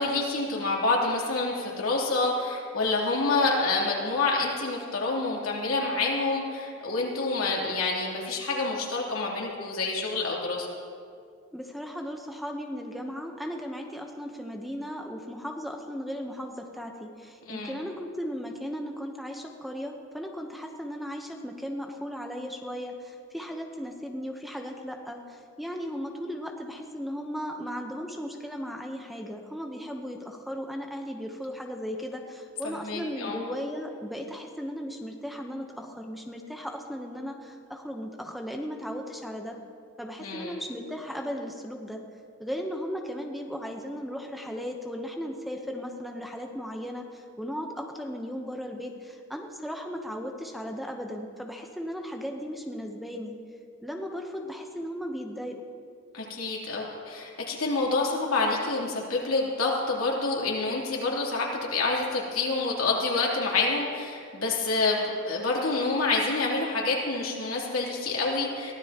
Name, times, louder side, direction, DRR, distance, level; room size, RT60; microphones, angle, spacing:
voice 1, 0.0-10.7 17.5-17.8 32.6-33.4 40.2-40.5 56.1-68.7, left 3 dB, 90° left, -3 dB, 3.2 m, -27 dB
voice 2, 11.5-39.6 40.0-42.0 42.4-53.4 53.8-55.6, equal, ahead, 2 dB, 0.9 m, -36 dB
22.5 x 15.5 x 3.0 m, 2.3 s
head